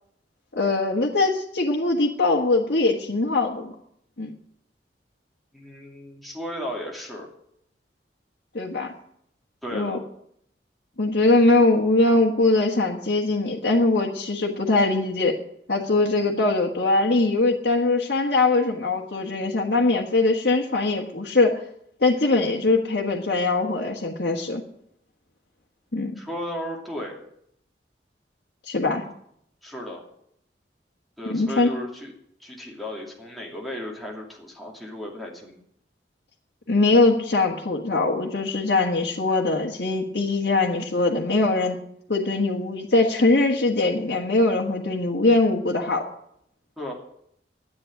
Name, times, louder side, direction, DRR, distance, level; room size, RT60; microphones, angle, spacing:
voice 1, 0.5-3.7 4.2-4.3 8.5-8.9 9.7-10.0 11.0-15.3 15.7-21.5 22.0-24.6 25.9-26.1 28.7-29.0 31.3-31.7 36.7-41.8 42.1-46.0, left 2 dB, 65° left, -2 dB, 1.6 m, -21 dB
voice 2, 5.5-7.3 9.6-10.0 26.1-27.2 29.6-30.0 31.2-32.1 32.4-35.6 46.8-46.9, equal, ahead, -3 dB, 2.7 m, -35 dB
11.0 x 8.8 x 9.6 m, 0.71 s
head